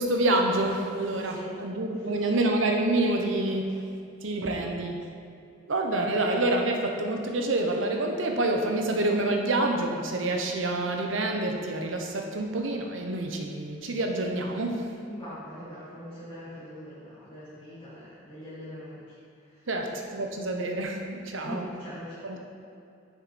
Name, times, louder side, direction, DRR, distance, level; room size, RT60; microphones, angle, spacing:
voice 1, 0.0-3.9 4.2-5.1 5.7-15.0 19.7-21.6 22.2-22.5, right 2 dB, 80° right, 2 dB, 0.9 m, -27 dB
voice 2, 1.2-1.6 1.9-2.1 15.1-19.7 21.3-22.5, equal, 25° left, -12 dB, 1.9 m, -42 dB
7.4 x 6.5 x 4.2 m, 2.5 s
head